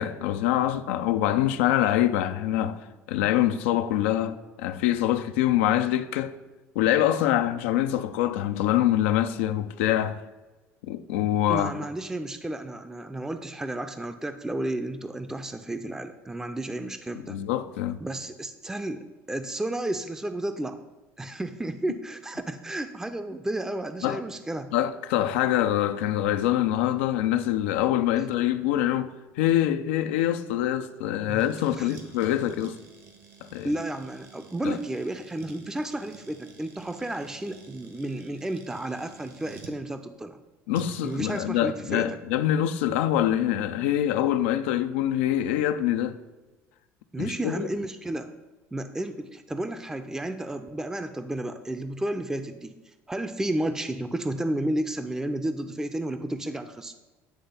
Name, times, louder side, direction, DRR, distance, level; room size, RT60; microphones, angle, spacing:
voice 1, 0.0-6.4 6.8-10.2 10.9-11.7 17.3-18.0 24.0-24.2 24.7-32.8 33.4-33.7 34.6-34.8 40.7-46.2 47.2-47.7, left 12 dB, 90° left, 0.4 m, -25 dB
voice 2, 11.5-17.4 18.0-20.8 21.2-24.7 31.3-31.4 31.7-32.0 33.6-40.4 41.0-42.2 47.1-48.3 48.7-52.7 53.1-56.9, right 1 dB, 10° right, 0.5 m, -32 dB
sound 1, 31.4-39.8 40.7-41.4, right 5 dB, 70° right, 1.4 m, -50 dB
9.7 x 3.3 x 5.5 m
supercardioid pair, 90°, 6 cm